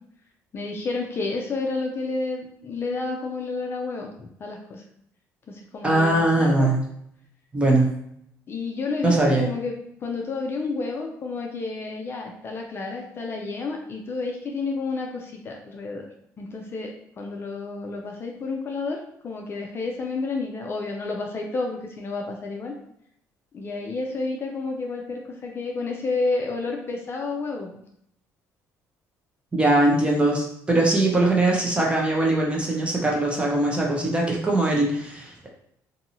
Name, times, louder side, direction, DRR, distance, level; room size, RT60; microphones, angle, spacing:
voice 1, 0.5-4.8 5.5-6.7 8.5-9.7 10.0-16.1 16.4-22.7 23.5-27.8, left 3 dB, 35° left, 1 dB, 0.4 m, -30 dB
voice 2, 5.8-6.8 7.5-7.9 9.0-9.4 29.5-35.5, right 2 dB, 15° right, -2 dB, 0.7 m, -21 dB
2.7 x 2.6 x 2.8 m, 0.72 s
cardioid pair, 120°, 7 cm